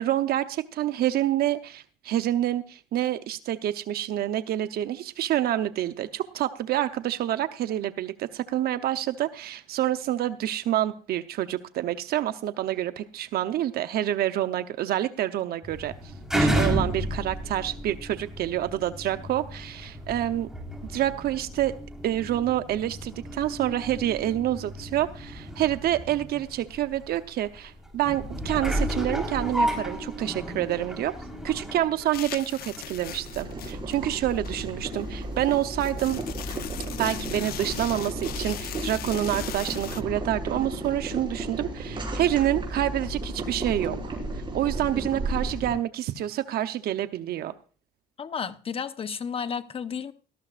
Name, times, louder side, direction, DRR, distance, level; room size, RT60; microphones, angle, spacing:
voice 1, 0.0-20.5 20.9-21.7 22.0-31.1 31.4-36.2 37.0-44.1 44.5-47.5, right 12 dB, 65° right, 0.8 m, -27 dB
sound 1, 15.6-33.0 33.5-33.6, equal, 5° right, 4.1 m, -32 dB
sound 2, 32.1-40.0, left 12 dB, 65° left, 0.8 m, -39 dB
Boiling, 33.0-45.7, right 1 dB, 30° right, 6.4 m, -34 dB
voice 2, 48.2-50.1, left 6 dB, 35° left, 1.0 m, -32 dB
18.0 x 13.5 x 2.5 m
cardioid pair, 110°, 17 cm